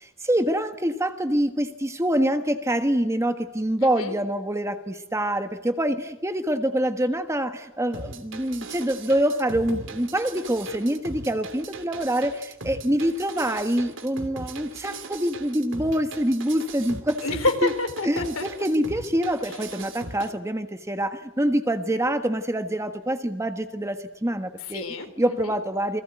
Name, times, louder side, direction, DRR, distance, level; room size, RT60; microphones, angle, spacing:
voice 1, 0.0-17.2 17.6-17.7 18.0-24.8 25.2-26.0, right 1 dB, 15° right, 8 dB, 1.4 m, -25 dB
voice 2, 3.8-4.1 17.2-18.4 24.7-25.5, left 2 dB, 80° left, 8 dB, 3.7 m, -28 dB
sound 1, 7.9-20.3, right 3 dB, 65° right, 2.9 m, -39 dB
29.0 x 21.5 x 9.4 m, 0.92 s
head